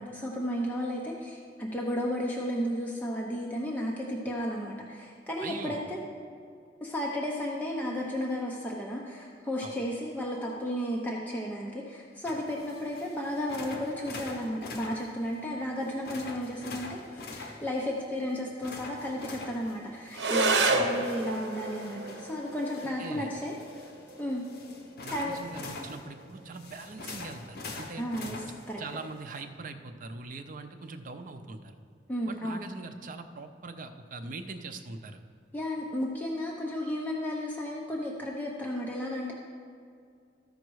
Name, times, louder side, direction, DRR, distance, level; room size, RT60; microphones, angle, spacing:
voice 1, 0.0-6.0 6.8-23.5 24.2-24.4 25.1-25.4 25.8-25.9 28.0-28.8 32.1-32.6 35.5-39.3, equal, 10° left, -3 dB, 0.7 m, -33 dB
voice 2, 5.4-5.8 9.6-9.8 20.7-20.9 22.8-23.3 25.0-28.3 28.8-31.7 32.3-35.2, right 3 dB, 50° right, 7 dB, 0.6 m, -42 dB
sound 1, 12.2-29.4, left 3 dB, 60° left, 0.9 m, -45 dB
sound 2, 20.1-29.1, right 2 dB, 80° right, 0.8 m, -33 dB
14.0 x 5.2 x 4.7 m, 2.3 s
head